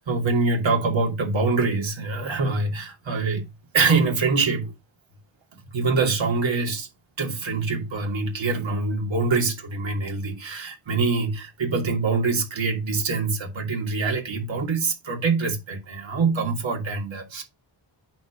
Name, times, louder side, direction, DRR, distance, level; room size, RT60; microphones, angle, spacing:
voice 1, 0.0-3.5 3.7-4.7 5.7-6.9 7.2-17.4, right 4 dB, 75° right, 2.9 m, -24 dB
9.1 x 5.1 x 5.1 m
wide cardioid pair, 165°, 46 cm